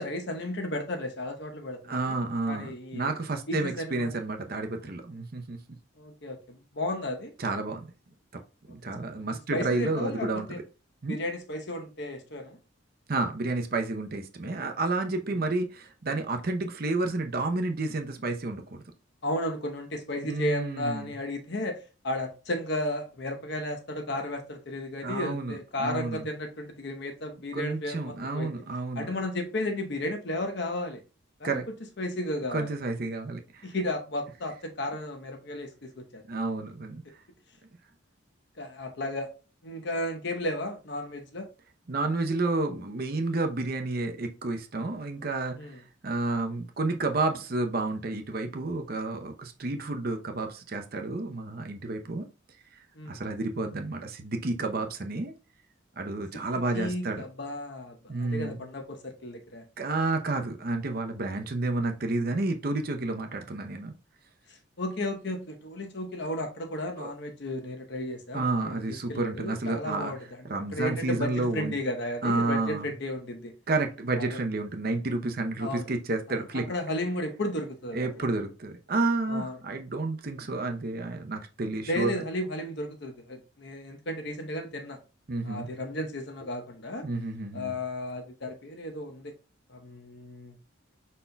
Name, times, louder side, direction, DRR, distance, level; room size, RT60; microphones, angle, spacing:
voice 1, 0.0-2.2 2.5-3.1 3.5-4.1 6.0-7.3 8.7-8.8 9.2-10.6 11.1-12.6 19.2-28.5 28.9-31.0 31.4-31.5 32.0-32.7 33.6-36.2 38.6-39.3 39.6-41.5 45.6-45.8 52.9-53.2 56.7-59.6 64.5-70.2 70.7-73.5 74.2-74.4 75.6-75.8 76.3-76.4 76.7-78.1 79.3-79.6 81.9-85.0 85.4-87.1 87.5-89.4 89.7-90.6, left 1 dB, 55° left, 0.9 m, -34 dB
voice 2, 1.9-5.6 7.4-7.9 8.3-8.4 8.7-10.6 11.0-11.2 13.1-18.8 20.2-21.1 25.0-26.3 27.5-29.1 31.4-31.7 32.5-33.7 36.3-37.0 41.9-52.3 52.7-55.3 56.0-57.2 58.1-58.6 59.8-63.9 67.0-67.1 68.3-70.1 70.4-71.8 72.2-72.9 73.7-76.7 77.9-82.1 85.3-85.7 87.0-87.7, right 2 dB, 45° right, 0.7 m, -30 dB
5.4 x 4.2 x 2.2 m
head